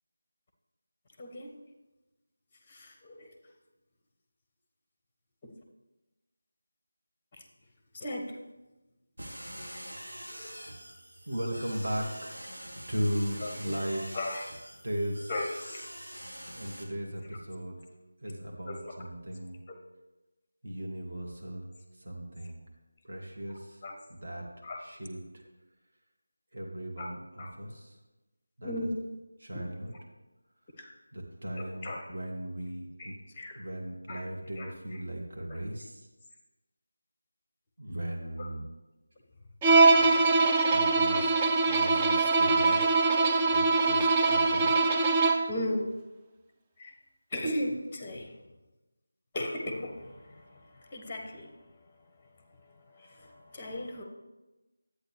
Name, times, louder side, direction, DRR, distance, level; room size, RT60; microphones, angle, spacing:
voice 1, 1.2-1.6 2.7-3.3 5.4-5.5 7.4-7.5 7.9-8.4 10.3-10.6 13.4-13.7 14.1-14.4 15.3-15.9 18.7-18.9 19.7-19.8 23.8-24.0 24.6-24.8 27.0-27.1 27.4-27.5 28.6-29.0 29.5-29.6 30.8-30.9 31.6-32.1 33.0-33.6 34.1-34.3 34.6-35.0 35.5-35.6 38.4-38.5 41.1-41.3 42.8-43.0 43.9-44.0 45.5-45.9 46.8-46.9 47.3-48.4 49.3-54.0, left 1 dB, 20° left, 4 dB, 0.9 m, -37 dB
sound 1, 9.2-16.8, equal, 70° right, 1.8 m, -45 dB
voice 2, 11.2-12.5 12.9-14.0 14.8-15.3 16.5-17.8 18.2-19.6 20.6-21.7 21.9-22.6 23.0-23.8 24.1-24.4 24.8-25.4 26.5-28.0 28.6-28.9 29.4-29.9 31.1-33.2 33.6-36.1 37.8-38.6 40.7-41.3 41.7-42.8 43.5-44.7, equal, 45° right, -1 dB, 1.7 m, -37 dB
Bowed string instrument, 39.6-45.6, right 3 dB, 15° right, 0.4 m, -23 dB
10.5 x 8.4 x 3.2 m, 1.1 s
figure-of-eight pair, 165°, 0 cm